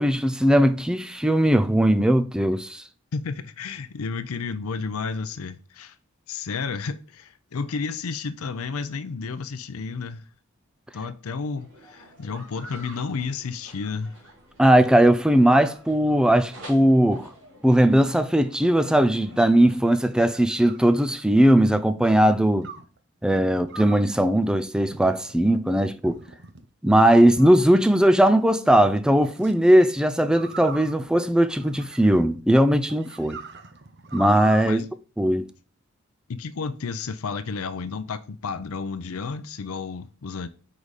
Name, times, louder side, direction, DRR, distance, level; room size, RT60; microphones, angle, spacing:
voice 1, 0.0-2.8 14.6-17.3 17.6-22.7 23.2-26.2 26.8-33.4 34.1-34.8 35.2-35.5, right 1 dB, 5° right, 0.4 m, -19 dB
voice 2, 3.1-6.0 6.3-10.3 10.9-14.2 34.6-34.9 36.3-40.5, left 5 dB, 85° left, 0.5 m, -32 dB
sound 1, 11.6-19.8, equal, 80° right, 2.9 m, -48 dB
sound 2, 19.8-21.6 22.6-23.0 23.7-24.1 24.9-25.4 26.0-26.7 27.4-28.1 29.2-29.5 30.3-32.4 32.9-34.7, right 4 dB, 50° right, 0.8 m, -41 dB
5.0 x 4.8 x 4.0 m
head